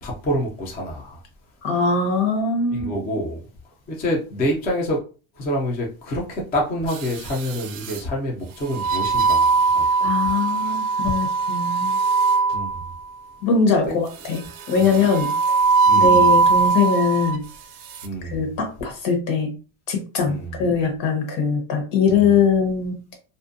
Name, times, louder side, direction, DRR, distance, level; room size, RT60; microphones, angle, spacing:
voice 1, 0.0-1.2 2.7-3.4 3.9-5.0 5.4-9.9 12.5-12.8 14.8-15.0 15.9-16.3 18.0-18.6 20.2-20.6 22.1-22.3, equal, 20° left, 0.4 m, -27 dB
voice 2, 1.6-2.9 10.0-12.0 13.4-15.3 15.9-17.4 18.2-19.5 19.9-22.9, left 5 dB, 65° left, 1.1 m, -21 dB
sound 1, 6.9-8.0 8.7-13.0 14.2-17.4 17.8-18.1, right 4 dB, 45° right, 0.4 m, -21 dB
2.5 x 2.1 x 2.5 m
cardioid pair, 150°, 49 cm